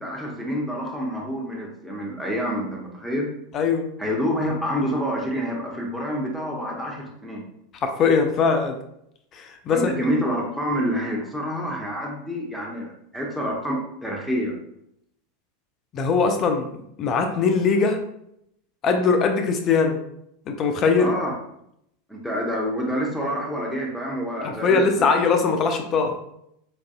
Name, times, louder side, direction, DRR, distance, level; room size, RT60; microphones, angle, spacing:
voice 1, 0.0-3.3 4.0-7.4 9.7-14.6 21.0-21.4 22.1-25.1, equal, ahead, -2 dB, 0.7 m, -27 dB
voice 2, 3.5-3.9 7.8-8.8 9.3-10.0 15.9-16.7 17.0-18.0 18.8-20.0 20.5-21.1 24.4-26.2, left 5 dB, 35° left, 5 dB, 0.4 m, -21 dB
4.6 x 2.5 x 2.3 m, 0.75 s
figure-of-eight pair, 85°, 0 cm